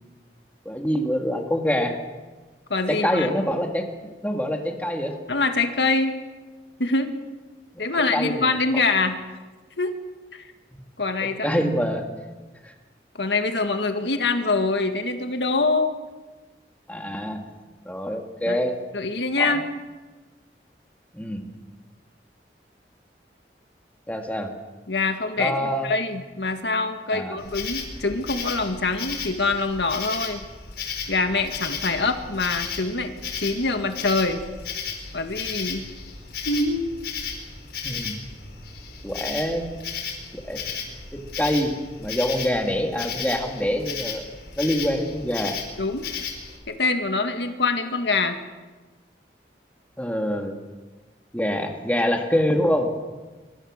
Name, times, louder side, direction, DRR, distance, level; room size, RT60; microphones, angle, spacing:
voice 1, 0.7-2.0 2.9-3.9 4.2-5.2 8.1-8.5 11.2-12.1 12.6-12.7 16.9-17.4 17.9-18.8 19.4-19.6 21.1-21.4 24.1-24.5 25.4-25.9 27.1-27.4 37.8-38.2 39.0-39.7 40.3-40.6 41.1-44.3 44.6-45.6 50.0-50.6 51.3-52.9, equal, 10° left, 3 dB, 2.4 m, -25 dB
voice 2, 2.7-3.3 5.3-6.2 6.8-7.1 7.8-9.2 9.8-9.9 10.3-10.4 11.0-11.6 13.2-15.9 18.5-18.7 18.9-19.6 24.9-25.5 25.8-30.4 31.1-34.4 35.1-35.9 36.5-36.9 45.8-46.1 46.7-48.4, left 3 dB, 80° left, 6 dB, 1.9 m, -24 dB
Insect, 27.4-46.6, left 6 dB, 65° left, 4.6 m, -34 dB
24.0 x 24.0 x 6.6 m, 1.3 s
head